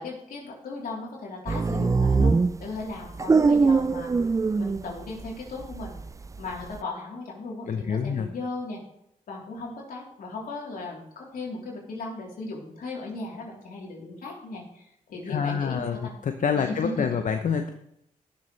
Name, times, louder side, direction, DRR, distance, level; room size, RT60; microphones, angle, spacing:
voice 1, 0.0-4.1 4.6-6.0 6.4-8.8 9.3-16.1 16.5-17.2, left 3 dB, 80° left, -2 dB, 3.4 m, -36 dB
sound 1, 1.5-5.3 5.6-6.8, right 4 dB, 20° right, 0.3 m, -22 dB
voice 2, 7.7-8.3 15.3-17.7, left 6 dB, 65° left, 7 dB, 0.8 m, -27 dB
17.0 x 6.9 x 3.2 m, 0.80 s
cardioid pair, 60°, 14 cm